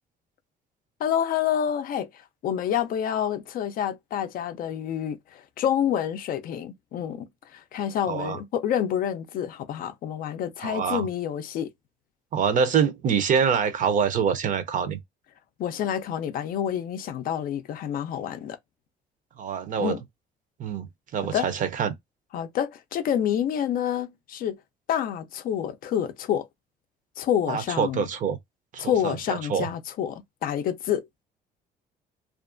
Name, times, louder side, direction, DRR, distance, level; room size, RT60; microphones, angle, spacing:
voice 1, 1.0-2.1 2.4-11.7 15.6-18.6 19.8-20.0 21.3-21.5 22.3-24.6 24.9-26.5 27.2-28.1 28.8-31.0, left 9 dB, 55° left, 0.4 m, -28 dB
voice 2, 8.1-8.4 10.6-11.1 12.3-15.0 19.4-20.0 20.6-20.9 21.1-21.9 27.5-28.4 28.7-29.7, right 7 dB, 50° right, 0.5 m, -25 dB
2.4 x 2.2 x 2.5 m
cardioid pair, 110°, 17 cm